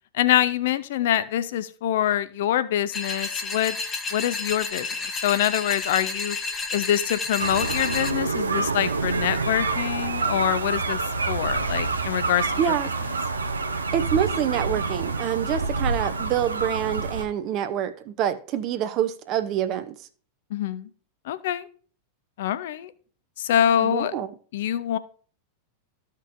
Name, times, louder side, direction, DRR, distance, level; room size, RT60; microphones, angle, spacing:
voice 1, 0.1-3.8 4.1-4.9 5.2-6.4 6.7-12.5 20.5-20.9 21.2-21.7 22.4-22.9 23.4-24.1 24.5-25.0, left 11 dB, 55° left, 0.5 m, -25 dB
sound 1, 2.9-8.1, left 3 dB, 20° left, 1.0 m, -31 dB
sound 2, 7.4-17.2, right 4 dB, 75° right, 0.7 m, -27 dB
voice 2, 12.6-12.9 13.9-20.0 23.8-24.3, right 10 dB, 40° right, 0.6 m, -26 dB
14.0 x 5.2 x 2.6 m
figure-of-eight pair, 90°, 0 cm